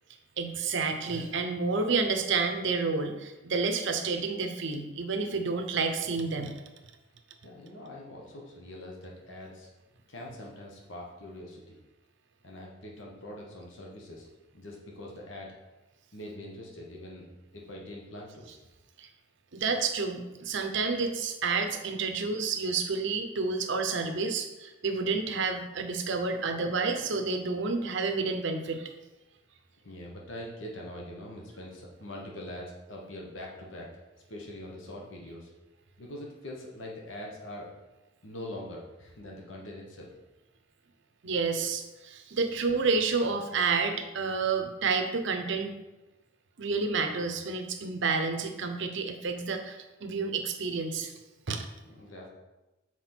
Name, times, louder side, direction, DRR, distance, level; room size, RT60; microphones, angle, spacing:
voice 1, 0.4-6.5 19.0-19.1 19.5-28.9 41.2-45.8 46.6-51.1 51.5-51.7, right 4 dB, 65° right, 5 dB, 0.7 m, -30 dB
voice 2, 7.4-9.7 10.1-11.8 12.4-14.3 14.5-15.5 16.1-17.3 17.5-18.5 29.8-33.9 34.3-35.5 36.0-37.7 38.2-40.1 51.8-52.3, left 1 dB, 65° left, -2 dB, 1.1 m, -43 dB
5.9 x 4.5 x 4.4 m, 1.1 s
head